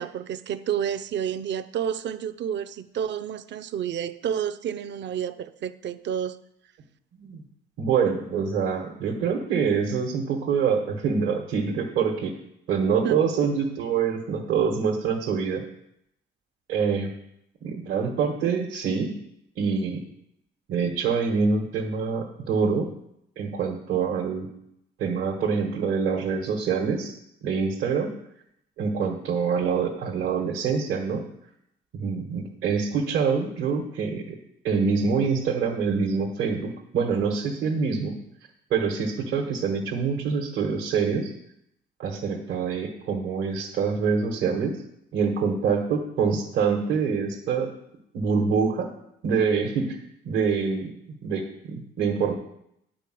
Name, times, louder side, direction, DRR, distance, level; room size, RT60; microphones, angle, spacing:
voice 1, 0.0-6.4 13.0-13.2, right 9 dB, 65° right, 13 dB, 0.6 m, -30 dB
voice 2, 7.8-12.3 12.7-15.6 16.7-17.1 17.6-19.1 19.6-20.0 20.7-22.9 23.4-24.5 25.0-27.1 27.4-28.1 28.8-31.2 31.9-34.4 34.6-38.1 38.7-41.3 42.0-44.7 45.1-47.7 48.1-48.9 49.2-50.0 50.2-50.9 51.2-52.3, right 5 dB, 85° right, 0 dB, 1.4 m, -25 dB
9.9 x 5.0 x 7.6 m, 0.77 s
cardioid pair, 90°, 20 cm